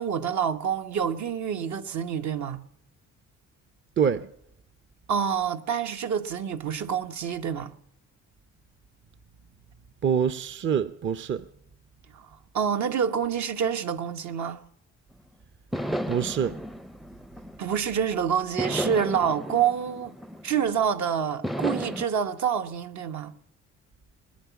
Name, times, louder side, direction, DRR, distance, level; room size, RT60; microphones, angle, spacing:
voice 1, 0.0-2.6 5.1-7.7 12.1-12.3 12.5-14.6 17.6-20.1 20.4-23.3, right 7 dB, 65° right, 1.2 m, -27 dB
voice 2, 4.0-4.3 10.0-11.4 16.1-16.6, right 7 dB, 40° right, 0.7 m, -25 dB
sound 1, 15.1-15.2 15.7-18.0 18.6-20.8 21.4-22.1, equal, ahead, 0.5 m, -33 dB
21.5 x 10.5 x 5.8 m
cardioid pair, 90°, 30 cm